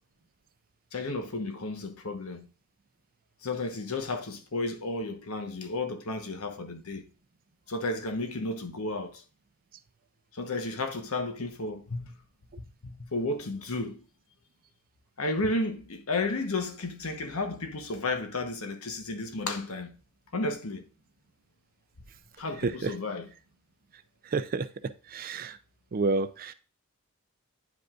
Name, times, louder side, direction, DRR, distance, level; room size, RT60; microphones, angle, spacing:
voice 1, 0.9-2.5 3.4-7.0 7.7-9.2 10.3-12.2 12.8-14.0 15.2-20.0 20.3-20.9 22.4-23.3, left 2 dB, 70° left, 1.0 m, -33 dB
voice 2, 22.6-22.9 24.2-24.7 25.1-25.6 25.9-26.5, right 3 dB, 40° right, 0.4 m, -29 dB
9.3 x 5.1 x 2.4 m
head